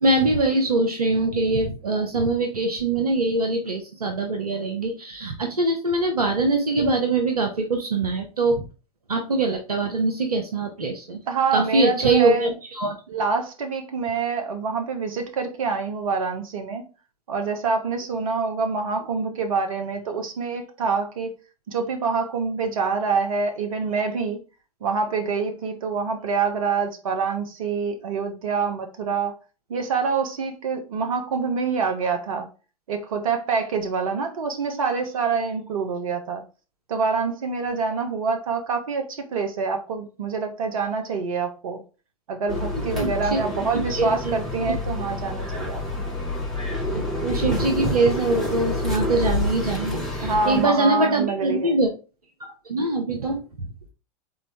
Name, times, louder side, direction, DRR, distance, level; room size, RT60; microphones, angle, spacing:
voice 1, 0.0-8.6 9.1-11.2 11.5-13.0 42.9-43.4 43.9-44.3 46.9-51.9 52.4-53.4, right 2 dB, 85° right, 0.9 m, -23 dB
voice 2, 11.3-12.5 13.1-16.8 17.3-21.3 21.7-24.4 24.8-29.3 29.7-32.5 32.9-36.4 36.9-41.8 42.3-45.8 50.2-51.7, right 5 dB, 65° right, 1.2 m, -26 dB
sound 1, 42.5-50.7, left 2 dB, ahead, 2.3 m, -28 dB
4.1 x 3.7 x 3.5 m
figure-of-eight pair, 95°, 19 cm